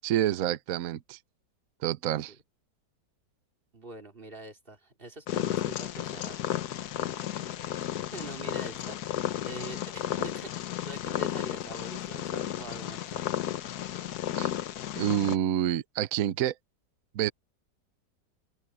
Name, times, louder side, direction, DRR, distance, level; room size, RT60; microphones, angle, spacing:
voice 1, 0.0-1.2 1.8-2.3 14.3-14.5 15.0-16.5 17.1-17.3, right 11 dB, 60° right, 1.1 m, -28 dB
voice 2, 3.7-6.6 7.9-9.1 9.5-13.3, right 2 dB, 30° right, 3.0 m, -44 dB
Purr, 5.3-15.4, left 12 dB, 65° left, 1.3 m, -33 dB
open air
omnidirectional pair, 1.9 m